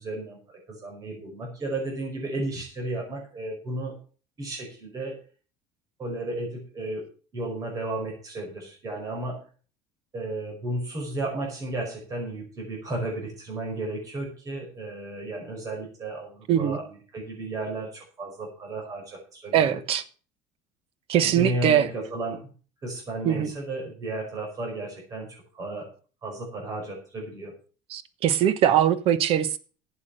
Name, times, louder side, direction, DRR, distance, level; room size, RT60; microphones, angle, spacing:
voice 1, 0.0-3.9 4.4-5.2 6.0-9.4 10.1-19.8 21.1-22.4 22.8-25.9 26.2-27.5, right 2 dB, 25° right, 5.3 m, -33 dB
voice 2, 19.5-20.0 21.1-21.9 23.2-23.5 27.9-29.6, right 10 dB, 45° right, 1.1 m, -22 dB
11.5 x 8.5 x 6.6 m
cardioid pair, 160°, 13 cm